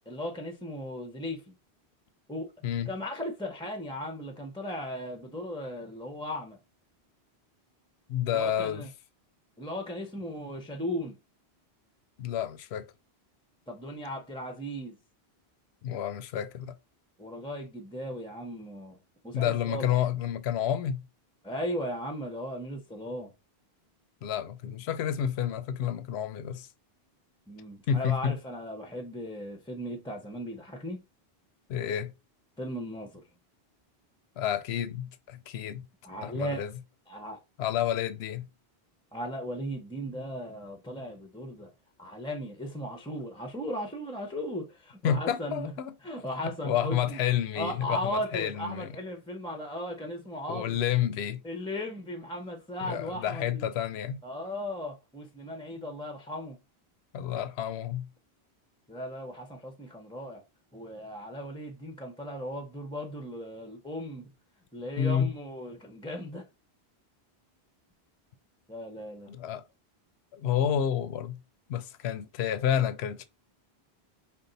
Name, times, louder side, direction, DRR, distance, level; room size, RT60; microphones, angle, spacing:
voice 1, 0.1-1.5 2.3-2.5 2.9-6.6 8.3-8.9 9.6-11.2 13.7-15.0 17.2-19.0 19.2-20.0 21.4-23.3 27.5-31.0 32.6-33.2 36.0-36.7 37.1-37.4 39.1-41.7 42.0-45.7 46.0-47.2 47.6-50.8 51.4-53.7 54.2-56.6 58.9-60.4 60.7-64.3 64.7-66.5 68.7-69.3, equal, 5° left, 0.5 m, -37 dB
voice 2, 8.1-8.9 12.2-12.9 15.8-16.7 19.3-21.0 24.2-26.7 27.9-28.4 31.7-32.1 34.4-35.9 36.2-36.7 37.6-38.5 45.0-45.9 46.4-48.9 50.5-51.4 52.8-54.2 57.1-58.1 65.0-65.3 69.3-69.6 70.3-71.4 71.7-73.2, left 9 dB, 80° left, 0.8 m, -30 dB
5.3 x 2.4 x 3.8 m
omnidirectional pair, 1.1 m